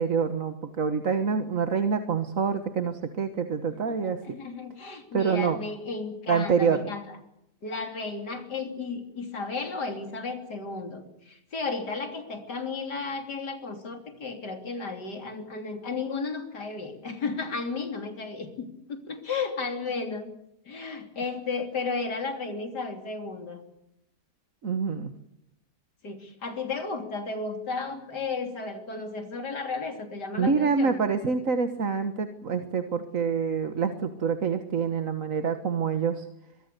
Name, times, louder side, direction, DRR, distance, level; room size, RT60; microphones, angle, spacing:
voice 1, 0.0-4.2 5.1-5.6 6.3-6.8 24.6-25.1 30.4-36.3, right 5 dB, 55° right, 8 dB, 1.7 m, -26 dB
voice 2, 4.2-7.0 7.6-20.3 20.7-23.6 26.0-31.0, left 4 dB, 75° left, 5 dB, 3.7 m, -34 dB
24.0 x 23.0 x 6.8 m, 0.80 s
omnidirectional pair, 1.8 m